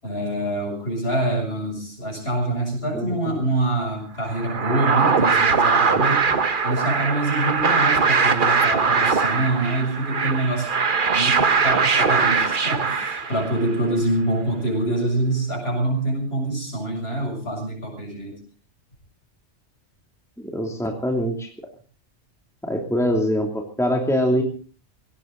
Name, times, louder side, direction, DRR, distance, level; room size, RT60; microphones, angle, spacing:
voice 1, 0.0-6.3 6.6-10.9 11.1-18.4, right 1 dB, 60° left, 1 dB, 7.4 m, -25 dB
voice 2, 2.9-3.4 20.4-21.5 22.6-24.4, equal, ahead, 2 dB, 2.7 m, -24 dB
sound 1, 4.3-13.7, right 5 dB, 45° right, 1.3 m, -21 dB
19.0 x 17.5 x 3.9 m, 0.38 s
omnidirectional pair, 1.2 m